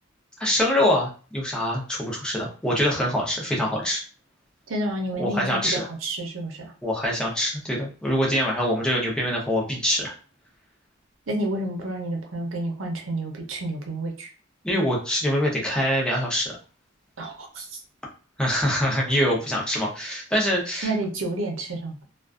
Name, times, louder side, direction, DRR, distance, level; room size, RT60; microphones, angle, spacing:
voice 1, 0.4-4.0 5.1-5.9 6.8-10.1 14.6-16.5 18.4-20.9, equal, 5° left, -2 dB, 0.6 m, -24 dB
voice 2, 4.7-6.7 11.3-14.3 17.2-17.8 20.8-22.0, right 1 dB, 85° right, 2 dB, 0.7 m, -30 dB
2.4 x 2.2 x 2.4 m, 0.38 s
head